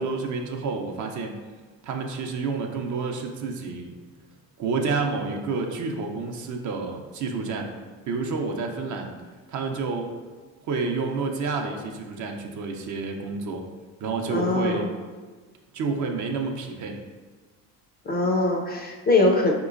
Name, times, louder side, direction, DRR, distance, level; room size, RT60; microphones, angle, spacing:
voice 1, 0.0-1.4 1.8-3.9 4.6-7.7 8.1-9.2 9.5-10.2 10.6-13.7 14.0-14.9 15.7-17.0, right 4 dB, 50° right, 3 dB, 0.5 m, -29 dB
voice 2, 14.3-14.9 18.1-19.5, left 2 dB, 25° left, 1 dB, 0.4 m, -22 dB
4.3 x 2.9 x 2.5 m, 1.4 s
supercardioid pair, 90°, 39 cm